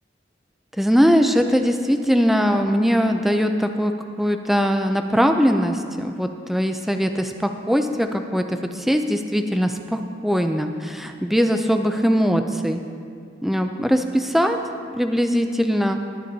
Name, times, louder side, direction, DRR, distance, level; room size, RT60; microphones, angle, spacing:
voice 1, 0.8-3.9 4.2-12.8 13.4-14.6 15.0-16.0, equal, ahead, 5 dB, 0.4 m, -21 dB
19.5 x 10.5 x 2.8 m, 2.3 s
head